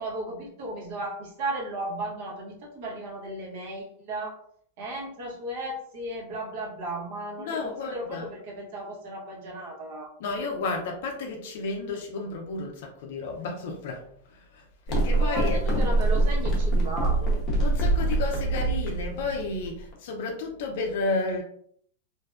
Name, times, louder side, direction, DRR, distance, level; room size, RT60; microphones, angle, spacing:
voice 1, 0.0-4.4 4.8-10.1 15.1-17.4, right 1 dB, 50° right, -1 dB, 0.9 m, -35 dB
voice 2, 7.4-8.3 10.2-14.0 14.3-15.6 17.6-21.4, left 3 dB, 60° left, 2 dB, 0.4 m, -32 dB
sound 1, 14.9-19.9, right 2 dB, 25° left, 0.7 m, -24 dB
2.5 x 2.2 x 2.3 m, 0.64 s
supercardioid pair, 160°, 0 cm